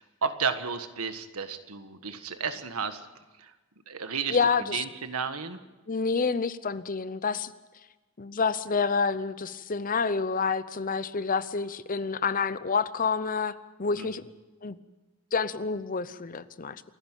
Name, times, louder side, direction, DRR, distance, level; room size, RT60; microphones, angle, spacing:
voice 1, 0.0-3.0 3.4-3.5 3.9-4.4 4.7-5.6 14.0-14.1, right 5 dB, 90° right, 9 dB, 1.6 m, -32 dB
voice 2, 4.3-4.8 5.9-7.5 8.2-14.2 14.6-14.8 15.3-16.8, left 5 dB, 40° left, 15 dB, 0.7 m, -28 dB
28.5 x 10.5 x 9.1 m, 1.2 s
head